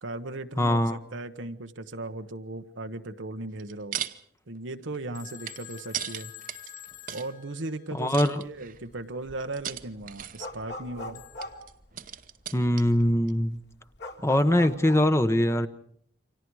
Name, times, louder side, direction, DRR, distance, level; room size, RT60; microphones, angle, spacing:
voice 1, 0.0-4.0 4.5-6.3 6.6-6.7 7.1-11.2, right 2 dB, 90° right, 7 dB, 1.2 m, -37 dB
voice 2, 0.6-1.0 7.9-8.4 12.5-13.6 14.2-15.7, left 1 dB, 15° left, 10 dB, 0.9 m, -22 dB
sound 1, 3.5-4.2 4.6-7.3 8.1-8.9 9.5-10.6 11.4-13.0 13.3-13.4, right 10 dB, 45° right, 0.9 m, -37 dB
Telephone, 5.1-8.2 11.1-11.6, left 14 dB, 45° left, 2.6 m, -47 dB
sound 2, 8.5-8.9 9.2-12.4 12.9-13.0 13.2-15.1, left 1 dB, 65° left, 3.0 m, -41 dB
29.0 x 25.5 x 4.8 m, 0.65 s
head